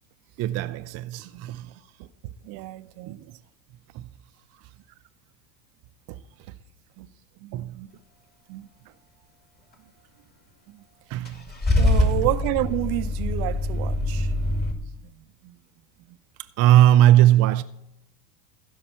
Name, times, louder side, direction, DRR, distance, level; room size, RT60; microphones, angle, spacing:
voice 1, 0.4-1.7 3.1-3.2 3.9-4.0 7.5-7.8 11.1-11.4 12.0-12.1 16.6-17.6, right 13 dB, 35° right, 0.5 m, -19 dB
voice 2, 2.4-3.2 6.1-6.2 7.0-7.1 7.4-7.9 8.5-8.7 10.7-10.8 11.8-14.3 15.4-15.6, right 17 dB, 55° right, 0.8 m, -30 dB
Car / Engine starting / Idling, 11.2-14.7, left 1 dB, 20° left, 2.4 m, -24 dB
15.5 x 5.8 x 5.7 m
hypercardioid pair, 85°, 47 cm